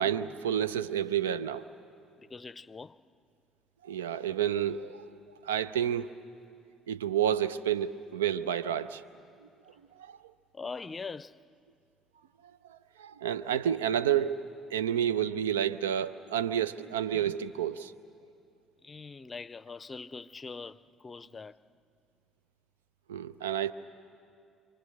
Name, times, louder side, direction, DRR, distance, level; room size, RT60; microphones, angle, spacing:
voice 1, 0.0-1.6 3.8-5.0 5.4-6.1 6.9-9.0 10.0-10.2 12.7-14.5 14.7-17.9 23.1-23.7, right 9 dB, 85° right, 0.6 m, -30 dB
voice 2, 2.2-3.0 10.5-11.4 18.8-21.6, left 4 dB, 30° left, 0.6 m, -42 dB
28.5 x 27.0 x 6.5 m
hypercardioid pair, 55°, 0 cm